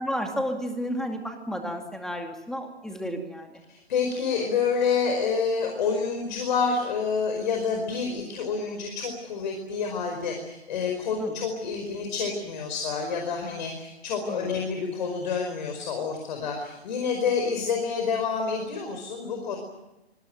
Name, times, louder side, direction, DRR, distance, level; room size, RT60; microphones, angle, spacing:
voice 1, 0.0-3.6 11.2-11.4 14.3-14.5, equal, ahead, 4 dB, 2.3 m, -32 dB
voice 2, 3.7-19.6, left 5 dB, 45° left, 3 dB, 5.1 m, -28 dB
25.5 x 21.5 x 7.8 m, 0.99 s
figure-of-eight pair, 140°, 33 cm